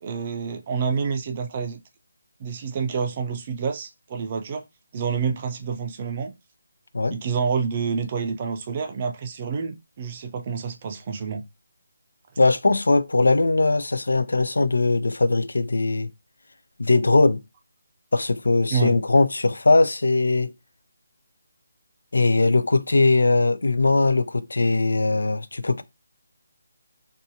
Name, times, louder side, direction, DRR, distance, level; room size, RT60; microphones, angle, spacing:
voice 1, 0.0-1.8 2.4-4.6 4.9-6.3 7.1-11.4 18.7-19.0, right 6 dB, 30° right, 0.4 m, -28 dB
voice 2, 12.4-16.1 16.8-17.4 18.1-20.5 22.1-25.8, left 3 dB, 85° left, 0.4 m, -20 dB
2.7 x 2.2 x 2.7 m
figure-of-eight pair, 170°, 0 cm